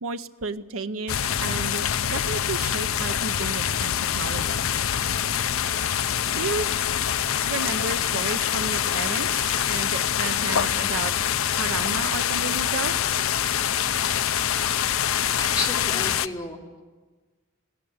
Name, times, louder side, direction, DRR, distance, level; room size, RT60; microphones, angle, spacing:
voice 1, 0.0-4.6 6.3-6.7 7.5-11.1 11.4-13.0, right 4 dB, 90° right, 10 dB, 0.7 m, -32 dB
sound 1, 1.1-16.3, left 9 dB, 90° left, 0.6 m, -25 dB
sound 2, 6.0-14.4, left 9 dB, 60° left, 1.4 m, -47 dB
voice 2, 14.8-16.6, left 2 dB, 20° left, -1 dB, 2.9 m, -33 dB
19.5 x 16.0 x 8.6 m, 1.3 s
head